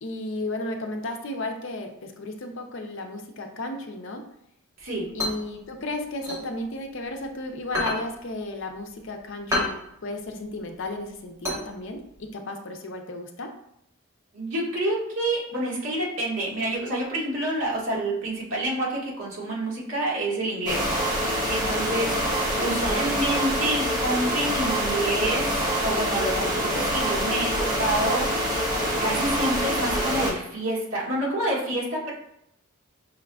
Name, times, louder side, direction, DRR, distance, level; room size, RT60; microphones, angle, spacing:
voice 1, 0.0-4.3 5.1-13.5 22.7-23.1, left 2 dB, 55° left, 4 dB, 0.5 m, -34 dB
sound 1, 4.8-7.2 7.6-12.3, left 1 dB, 15° right, 1.0 m, -31 dB
voice 2, 14.3-20.8 21.2-28.3 29.0-32.1, right 1 dB, 70° right, -5 dB, 1.5 m, -28 dB
sound 2, 20.7-30.3, equal, 40° right, 1.6 m, -25 dB
5.6 x 3.6 x 2.3 m, 0.76 s
head